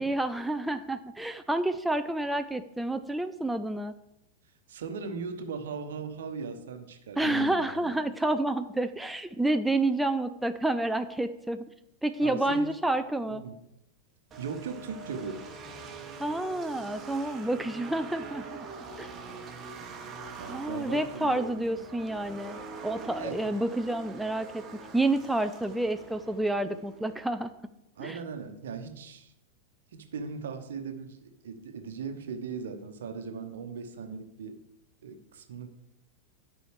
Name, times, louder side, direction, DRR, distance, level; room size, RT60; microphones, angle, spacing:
voice 1, 0.0-3.9 7.2-11.7 12.0-13.4 16.2-18.4 19.0-19.1 20.5-24.6 24.9-27.5 28.0-28.2, right 2 dB, 5° right, 8 dB, 0.4 m, -29 dB
voice 2, 4.7-8.1 12.2-12.7 13.3-13.5 14.4-15.4 20.4-21.8 23.2-23.6 28.0-29.3 29.9-34.6 35.0-35.7, right 5 dB, 60° right, 7 dB, 1.0 m, -38 dB
sound 1, 14.3-27.3, right 4 dB, 25° right, 1.1 m, -44 dB
12.0 x 5.5 x 3.2 m, 0.86 s
figure-of-eight pair, 90°, 0 cm